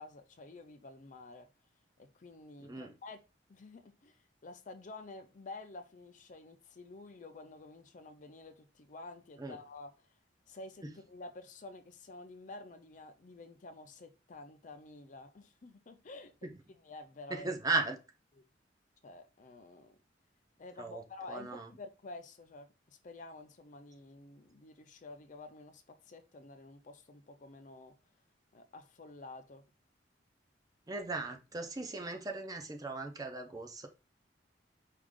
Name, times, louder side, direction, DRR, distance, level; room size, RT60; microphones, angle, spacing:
voice 1, 0.0-1.5 2.0-3.2 3.5-10.1 10.5-16.3 16.7-17.5 18.3-18.4 19.0-20.0 20.6-27.9 28.5-29.6, left 2 dB, 40° left, 0.5 m, -50 dB
voice 2, 17.3-18.0 20.8-21.0 21.3-21.7 30.9-33.9, right 3 dB, 20° right, 0.5 m, -37 dB
4.8 x 2.4 x 3.6 m
head